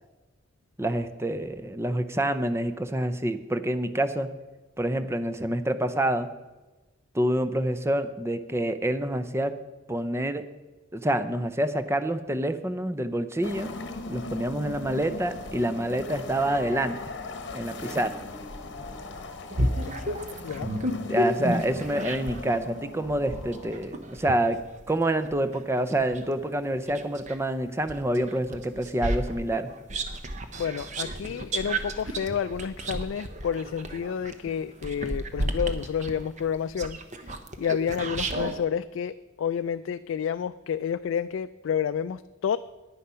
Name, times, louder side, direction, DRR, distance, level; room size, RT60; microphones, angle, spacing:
voice 1, 0.8-4.3 4.8-6.3 7.1-9.6 9.9-10.4 10.9-13.7 14.1-17.0 17.5-18.1 21.1-24.6 24.9-29.7, right 1 dB, 15° right, 10 dB, 0.5 m, -27 dB
sound 1, 13.4-24.6, left 3 dB, 60° left, 1.0 m, -39 dB
sound 2, 19.5-22.5 23.0-27.4 27.9-38.6, right 1 dB, 40° right, 0.8 m, -32 dB
voice 2, 30.6-37.0 37.3-42.6, left 7 dB, 90° left, 11 dB, 0.3 m, -30 dB
9.9 x 9.7 x 5.6 m, 1.2 s
head